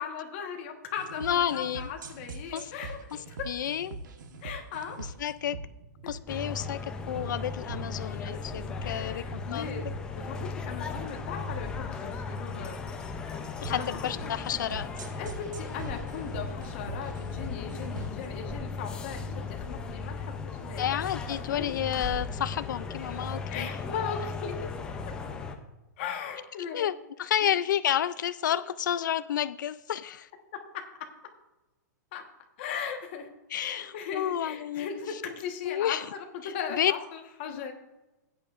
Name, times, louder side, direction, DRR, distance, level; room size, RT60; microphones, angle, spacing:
voice 1, 0.0-3.0 3.3-3.5 4.4-5.0 8.2-8.4 8.8-9.9 10.1-12.8 13.7-13.9 14.2-14.3 15.2-20.9 21.5-21.7 23.5-24.7 25.1-25.2 26.0-26.9 27.4-27.5 28.5-28.6 30.5-31.1 32.1-32.2 32.6-37.7, left 7 dB, 35° left, 3 dB, 1.3 m, -38 dB
sound 1, 1.0-18.3, right 3 dB, 85° right, 1.3 m, -43 dB
voice 2, 1.2-1.9 2.5-2.7 3.5-4.0 5.2-5.6 6.1-9.7 13.6-14.9 20.8-23.7 26.7-26.9 27.2-30.3 33.5-34.9 35.7-36.1 36.4-36.5 36.8-36.9 37.5-37.6, left 10 dB, 85° left, 14 dB, 0.4 m, -30 dB
sound 2, 6.3-25.5, left 4 dB, 10° left, 0.5 m, -37 dB
17.0 x 8.9 x 2.5 m, 1.1 s
hypercardioid pair, 175°, 10 cm